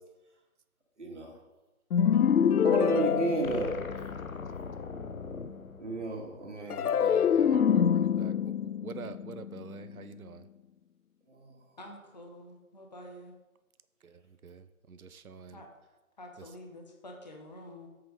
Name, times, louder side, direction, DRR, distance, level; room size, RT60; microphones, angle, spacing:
voice 1, 1.0-1.3 2.6-3.8 5.8-7.0 11.3-11.5, right 2 dB, 50° right, 0 dB, 2.5 m, -32 dB
sound 1, 1.9-4.3 6.7-10.0, left 8 dB, 80° left, 0.5 m, -26 dB
sound 2, 3.4-6.8, left 4 dB, 65° left, 0.9 m, -42 dB
voice 2, 7.0-8.5 8.8-10.4 14.4-15.6, right 6 dB, 70° right, 12 dB, 0.8 m, -45 dB
voice 3, 11.8-13.3 15.5-15.7 16.2-17.9, left 1 dB, 30° left, 1 dB, 1.1 m, -48 dB
11.0 x 7.9 x 3.8 m, 1.1 s
figure-of-eight pair, 170°, 44 cm